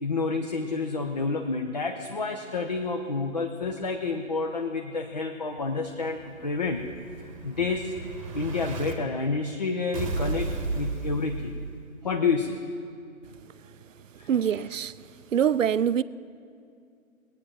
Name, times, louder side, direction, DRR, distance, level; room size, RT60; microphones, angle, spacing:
voice 1, 0.0-6.9 7.2-7.9 8.3-11.5 12.0-12.6 14.2-14.3, left 4 dB, 30° left, 0.5 m, -29 dB
Explosion, 5.6-8.9 9.9-12.0, right 4 dB, 25° right, 1.1 m, -34 dB
voice 2, 14.3-15.0 15.3-16.0, right 8 dB, 65° right, 0.5 m, -24 dB
20.0 x 8.9 x 5.9 m
figure-of-eight pair, 145°, 41 cm